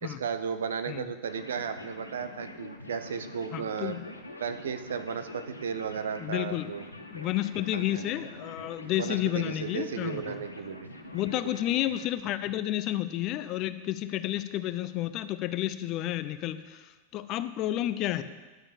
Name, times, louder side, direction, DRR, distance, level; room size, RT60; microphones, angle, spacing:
voice 1, 0.0-4.0 4.4-6.9 7.7-8.0 9.0-10.9, right 7 dB, 65° right, 9 dB, 0.8 m, -34 dB
sound 1, 1.2-12.1, left 1 dB, 85° left, 0.9 m, -45 dB
voice 2, 3.5-4.1 6.2-6.7 7.1-10.4 11.1-18.2, left 14 dB, 40° left, 13 dB, 0.6 m, -31 dB
11.0 x 6.9 x 7.1 m, 1.3 s
figure-of-eight pair, 90°, 0 cm